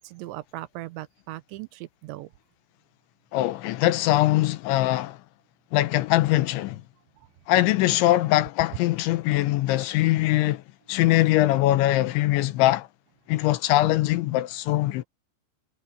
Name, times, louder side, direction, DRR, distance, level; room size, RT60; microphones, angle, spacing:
voice 1, 0.0-2.3, right 17 dB, 85° right, 3.0 m, -38 dB
voice 2, 3.3-5.2 5.7-6.8 7.5-10.6 10.9-12.9 13.3-15.0, left 16 dB, 80° left, 3.2 m, -22 dB
omnidirectional pair, 5.4 m